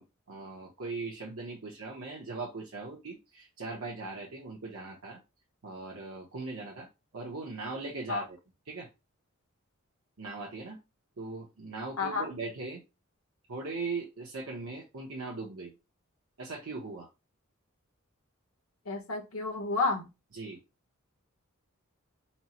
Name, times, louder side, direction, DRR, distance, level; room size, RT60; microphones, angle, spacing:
voice 1, 0.0-5.2 5.6-6.9 7.1-8.4 8.7-8.9 10.2-10.8 11.2-12.8 13.5-15.7 16.4-17.1 20.3-20.6, right 3 dB, 75° right, -3 dB, 0.9 m, -39 dB
voice 2, 12.0-12.3 18.9-20.1, left 3 dB, 80° left, 3 dB, 1.1 m, -30 dB
4.2 x 2.1 x 4.2 m, 0.26 s
head